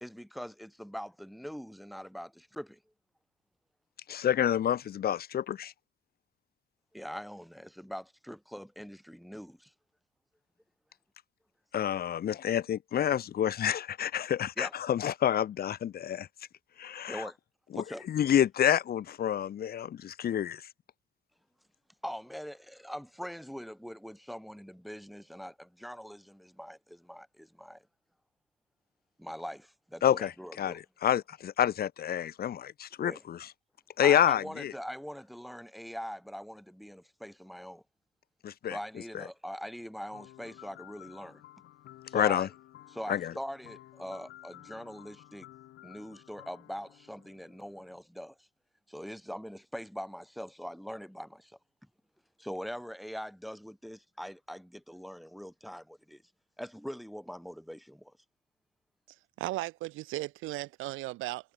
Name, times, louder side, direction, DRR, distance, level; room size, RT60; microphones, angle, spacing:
voice 1, 0.0-2.8 6.9-9.7 14.6-14.7 17.1-17.4 17.8-18.0 22.0-27.8 29.2-30.8 33.0-33.2 34.0-37.8 38.7-41.4 42.1-42.5 42.9-45.5 45.8-48.3 48.9-51.6 52.4-56.2 56.6-58.1, equal, ahead, 0.8 m, -42 dB
voice 2, 4.1-5.7 11.7-16.3 16.8-17.2 17.7-20.6 30.0-33.5 34.0-34.7 38.4-38.8 42.1-42.5 43.1-43.3, left 10 dB, 50° left, 0.7 m, -28 dB
sound 1, 40.1-48.0, left 14 dB, 80° left, 2.9 m, -54 dB
voice 3, 59.4-61.5, right 18 dB, 85° right, 0.5 m, -36 dB
cardioid pair, 90°, 20 cm